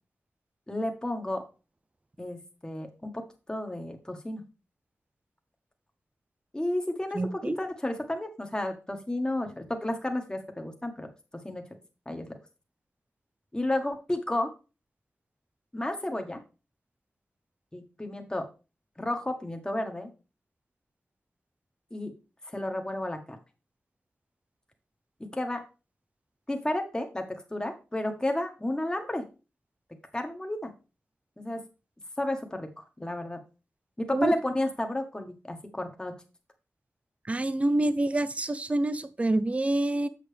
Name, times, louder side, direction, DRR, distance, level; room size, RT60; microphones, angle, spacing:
voice 1, 0.7-1.4 2.2-3.2 3.5-4.5 6.5-11.1 11.4-11.6 12.1-12.4 13.5-14.5 15.7-16.4 17.7-18.4 19.0-20.1 21.9-22.1 22.5-23.4 25.3-25.6 26.5-29.2 30.1-30.7 31.4-31.6 32.2-33.4 34.0-36.1, left 1 dB, 15° left, 4 dB, 1.3 m, -32 dB
voice 2, 7.1-7.6 34.1-34.3 37.3-40.1, right 2 dB, 25° right, 14 dB, 0.5 m, -27 dB
7.4 x 6.7 x 3.4 m, 0.31 s
wide cardioid pair, 100°, 5 cm